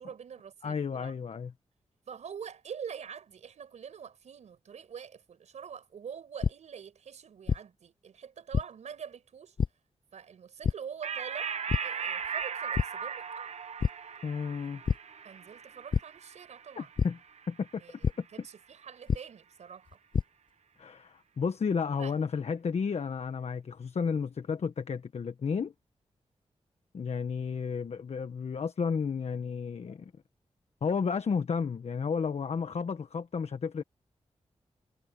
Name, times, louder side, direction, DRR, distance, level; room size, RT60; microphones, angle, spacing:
voice 1, 0.0-1.1 2.1-9.6 10.1-11.5 11.8-13.5 15.2-16.9 17.8-17.9 18.3-20.0 22.0-22.1, right 7 dB, 90° right, 5.8 m, -45 dB
voice 2, 0.6-1.5 14.2-14.8 16.8-17.2 17.5-17.8 18.2-18.3 20.8-25.7 26.9-30.1 30.8-33.8, left 6 dB, 65° left, 1.3 m, -32 dB
sound 1, 6.4-6.5 7.5-7.6 8.5-8.6 9.6-9.7 10.6-10.7 11.7-11.8 12.2-12.4 12.7-12.9 13.8-13.9 14.9-15.0 15.9-16.0 17.0-17.1 18.0-18.1 19.1-19.2 19.9-20.2, left 6 dB, 45° left, 0.4 m, -26 dB
sound 2, 11.0-17.9, right 7 dB, 75° right, 1.1 m, -38 dB
cardioid pair, 65°, 12 cm